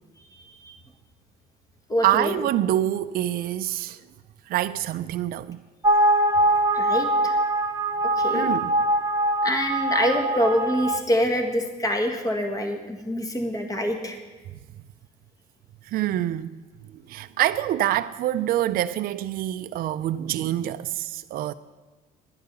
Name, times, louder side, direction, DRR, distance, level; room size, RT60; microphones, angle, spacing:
voice 1, 0.3-0.8 1.9-2.5 6.7-7.4 8.0-8.5 9.4-14.2, equal, 20° left, 1.7 m, -26 dB
voice 2, 2.0-4.0 4.5-5.6 8.3-8.7 15.8-16.6 16.9-21.5, right 13 dB, 60° right, 0.4 m, -26 dB
sound 1, 5.8-11.0, right 1 dB, 20° right, 1.0 m, -22 dB
10.5 x 10.0 x 6.8 m
cardioid pair, 110°, 17 cm